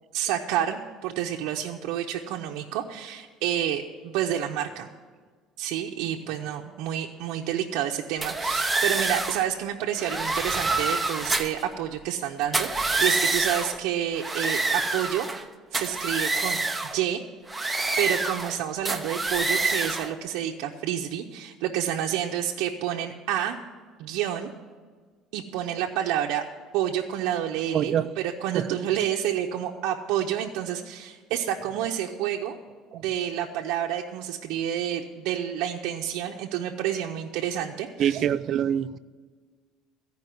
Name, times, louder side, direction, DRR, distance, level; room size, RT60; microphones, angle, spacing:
voice 1, 0.1-4.9 5.6-15.3 15.7-16.6 16.9-17.2 17.7-23.6 24.0-24.5 25.3-26.4 26.7-32.6 32.9-38.2, right 10 dB, 80° right, 0 dB, 0.7 m, -29 dB
sound 1, 8.2-9.4 10.0-11.6 12.4-13.8 14.1-15.4 15.7-17.0 17.5-18.6 18.8-20.1, right 3 dB, 10° right, 0.7 m, -27 dB
voice 2, 27.7-28.1 28.5-28.7 38.0-39.0, right 9 dB, 45° right, 14 dB, 0.4 m, -24 dB
14.5 x 5.3 x 9.2 m, 1.5 s
cardioid pair, 145°, 0 cm